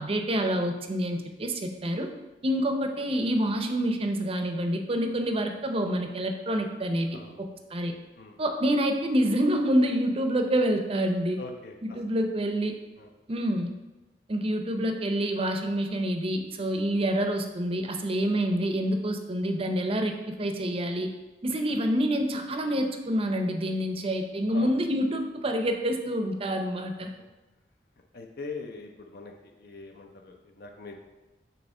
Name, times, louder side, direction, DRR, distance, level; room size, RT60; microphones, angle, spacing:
voice 1, 0.0-2.1 2.4-7.9 8.4-11.4 11.8-12.7 13.3-13.7 14.3-21.1 21.4-27.1, equal, 35° right, 5 dB, 0.6 m, -27 dB
voice 2, 7.1-7.5 8.2-8.4 11.4-12.0 13.0-13.1 24.5-24.7 28.1-30.9, left 3 dB, 60° left, 2 dB, 0.6 m, -42 dB
7.1 x 3.0 x 5.3 m, 1.1 s
head